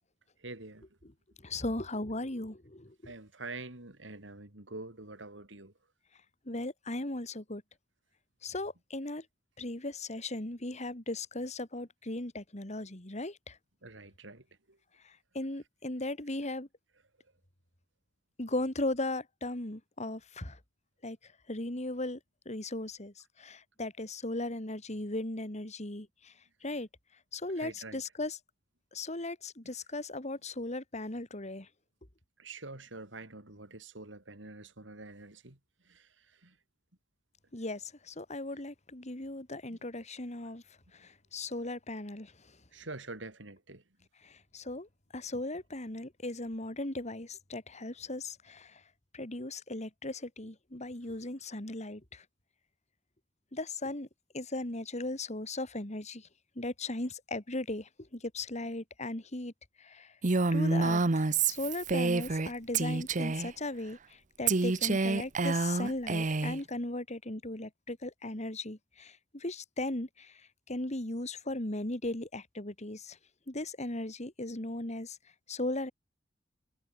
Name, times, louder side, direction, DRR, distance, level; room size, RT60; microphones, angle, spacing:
voice 1, 0.4-0.9 3.0-5.7 13.8-14.8 27.6-28.0 29.6-29.7 32.4-35.6 35.9-36.6 39.7-39.8 42.7-43.8, right 3 dB, 85° right, 3.7 m, -46 dB
voice 2, 1.4-3.1 6.5-7.6 8.4-9.2 9.6-13.6 15.0-16.7 18.4-20.6 21.0-21.2 21.5-22.2 22.4-26.3 26.6-26.9 27.3-28.4 28.9-31.7 37.5-40.6 40.9-42.3 44.2-44.9 45.1-48.8 49.1-52.2 53.5-54.1 54.3-56.3 56.6-59.5 59.8-60.1 60.5-70.4 70.7-73.2 73.5-75.2 75.5-75.9, left 2 dB, 40° left, 2.9 m, -37 dB
Female speech woman speaking, 60.2-62.5 62.7-63.5 64.5-66.6, right 3 dB, 45° right, 0.9 m, -28 dB
head